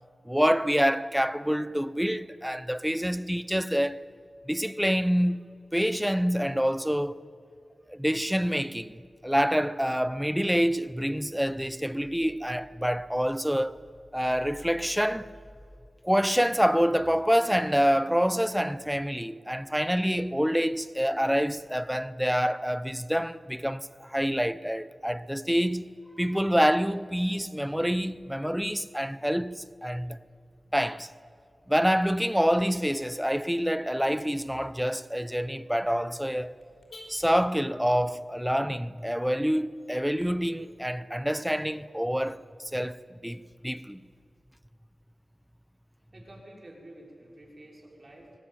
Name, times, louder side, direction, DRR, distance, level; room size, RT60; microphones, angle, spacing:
voice 1, 0.3-4.0 4.5-5.4 5.7-7.2 7.9-9.0 9.2-13.8 14.1-15.3 16.0-25.9 26.2-30.2 30.7-31.1 31.7-36.6 37.1-42.4 42.7-43.0 43.2-44.0, equal, 5° right, 0.8 m, -27 dB
Car / Alarm, 31.1-40.3, left 1 dB, 65° left, 5.1 m, -58 dB
voice 2, 46.1-48.3, right 1 dB, 45° right, 6.0 m, -49 dB
24.0 x 18.0 x 9.2 m
cardioid pair, 60°, 0 cm